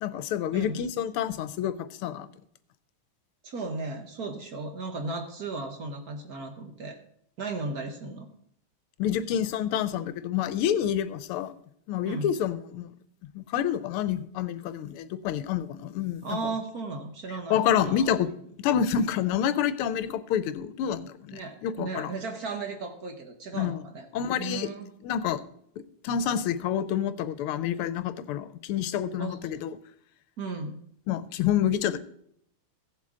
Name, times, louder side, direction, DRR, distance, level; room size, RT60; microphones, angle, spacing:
voice 1, 0.0-2.3 9.0-11.5 11.9-12.9 13.3-16.4 17.5-18.3 18.6-22.1 23.5-23.8 24.1-24.7 25.0-25.4 25.8-29.8 31.1-32.0, left 9 dB, 90° left, 14 dB, 1.5 m, -28 dB
voice 2, 0.5-0.9 3.4-7.0 7.4-8.3 12.0-12.3 16.2-18.1 21.3-24.1 24.4-24.9 29.2-29.4 30.4-30.8, right 3 dB, 50° right, 4 dB, 1.4 m, -35 dB
15.5 x 7.5 x 3.7 m, 0.69 s
omnidirectional pair, 2.4 m